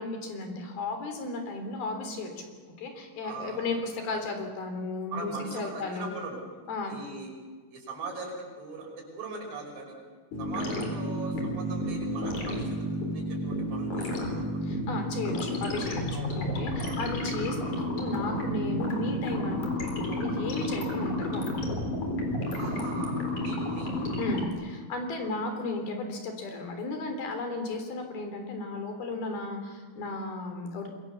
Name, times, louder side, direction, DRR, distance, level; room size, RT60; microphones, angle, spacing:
voice 1, 0.0-2.5 2.8-6.1 6.7-7.0 14.6-16.0 16.4-21.5 24.2-30.9, left 3 dB, 75° left, 5 dB, 5.4 m, -34 dB
voice 2, 3.2-3.8 4.1-4.2 5.1-6.4 6.9-7.3 7.7-10.0 10.4-12.8 13.1-14.6 16.1-16.4 16.8-17.0 22.5-23.9 25.2-25.3, right 3 dB, 70° right, 0 dB, 7.7 m, -40 dB
sound 1, 10.3-24.5, equal, 50° left, 5.2 m, -31 dB
27.0 x 22.5 x 7.1 m, 1.5 s
omnidirectional pair, 4.3 m